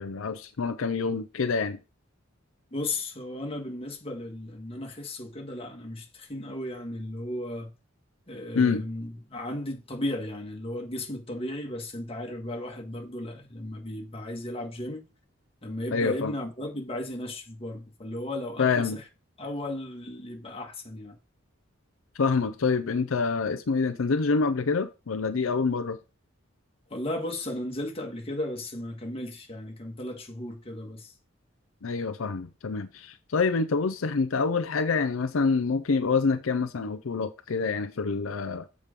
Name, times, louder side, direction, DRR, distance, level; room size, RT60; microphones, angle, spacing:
voice 1, 0.0-1.8 8.5-8.8 15.9-16.3 18.6-19.0 22.1-26.0 31.8-38.7, left 4 dB, 75° left, 0.6 m, -26 dB
voice 2, 2.7-7.7 8.3-15.0 15.6-19.0 19.4-21.1 26.9-31.1, left 1 dB, 30° left, 1.7 m, -35 dB
7.4 x 4.9 x 5.2 m
head